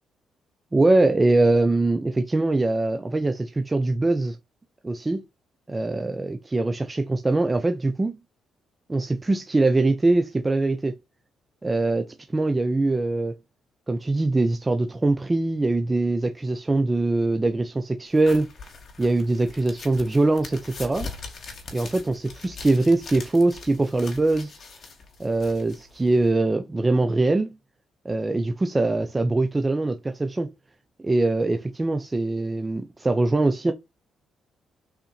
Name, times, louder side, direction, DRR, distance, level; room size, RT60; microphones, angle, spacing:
voice 1, 0.7-4.4 4.8-5.2 5.7-8.2 8.9-11.0 11.6-13.3 13.9-18.5 19.0-21.1 21.7-24.5 25.2-27.6 28.0-30.5 31.0-33.7, right 2 dB, 20° right, 0.7 m, -22 dB
sound 1, 18.1-26.3, left 4 dB, 50° left, 2.5 m, -42 dB
5.5 x 4.3 x 4.4 m
cardioid pair, 90°, 0 cm